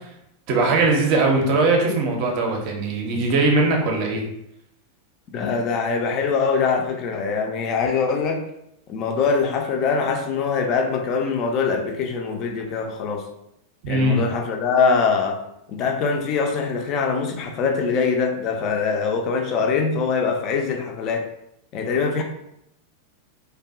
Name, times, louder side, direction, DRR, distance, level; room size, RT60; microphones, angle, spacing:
voice 1, 0.5-4.2 13.8-14.2, right 2 dB, 45° right, 1 dB, 0.5 m, -20 dB
voice 2, 5.3-8.4 8.9-13.2 13.9-15.4 15.7-21.3 21.7-22.2, left 5 dB, 35° left, 3 dB, 0.3 m, -23 dB
2.6 x 2.1 x 2.3 m, 0.80 s
figure-of-eight pair, 90°, 0 cm